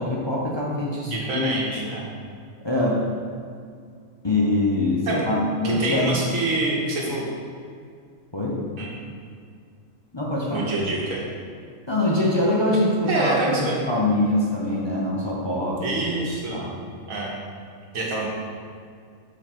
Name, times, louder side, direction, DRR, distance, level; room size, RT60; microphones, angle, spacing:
voice 1, 0.0-1.6 2.6-3.0 4.2-6.1 8.3-8.6 10.1-10.6 11.9-15.8 16.5-16.8, left 1 dB, 25° left, -5 dB, 0.7 m, -23 dB
voice 2, 1.0-2.1 5.1-5.2 5.6-7.3 8.8-8.9 10.5-11.2 13.1-13.8 15.8-16.6 17.1-17.4 17.9-18.3, right 2 dB, 85° right, -3 dB, 1.7 m, -26 dB
7.0 x 4.4 x 4.5 m, 2.2 s
omnidirectional pair, 1.4 m